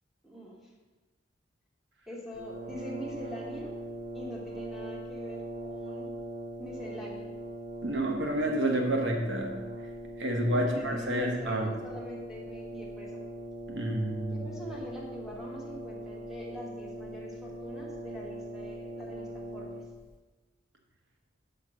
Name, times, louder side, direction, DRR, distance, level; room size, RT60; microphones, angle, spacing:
voice 1, 0.2-0.5 2.1-3.7 4.1-6.1 6.6-7.3 10.5-13.2 14.3-19.8, left 1 dB, ahead, -4 dB, 1.4 m, -43 dB
Brass instrument, 2.3-20.1, right 1 dB, 45° right, 0.7 m, -41 dB
voice 2, 7.8-9.5 10.2-11.7 13.7-14.5, right 1 dB, 75° right, 2 dB, 1.0 m, -29 dB
5.5 x 5.2 x 6.3 m, 1.2 s
head